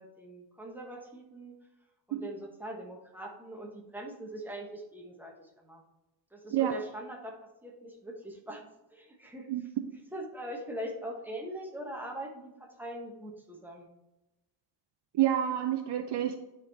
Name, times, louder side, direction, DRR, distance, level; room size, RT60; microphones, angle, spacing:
voice 1, 0.0-1.5 2.1-5.8 6.3-7.3 7.6-9.5 10.1-13.9, right 1 dB, 5° right, 0 dB, 1.1 m, -42 dB
voice 2, 15.2-16.4, right 11 dB, 65° right, 7 dB, 0.6 m, -28 dB
9.6 x 3.8 x 4.0 m, 1.0 s
wide cardioid pair, 150°, 44 cm